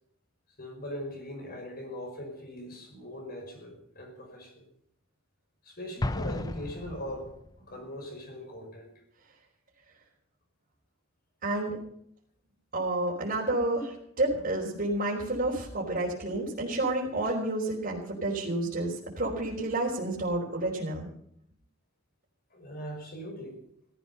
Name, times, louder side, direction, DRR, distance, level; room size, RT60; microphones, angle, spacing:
voice 1, 0.6-4.7 5.6-7.3 7.6-8.9 14.3-14.4 22.5-23.6, equal, 45° left, 3 dB, 5.5 m, -41 dB
Explosion, 6.0-7.6, left 2 dB, 20° left, 0.5 m, -34 dB
voice 2, 11.4-11.8 12.7-21.1, right 2 dB, 45° right, -5 dB, 3.7 m, -30 dB
16.5 x 14.0 x 5.6 m, 0.72 s
head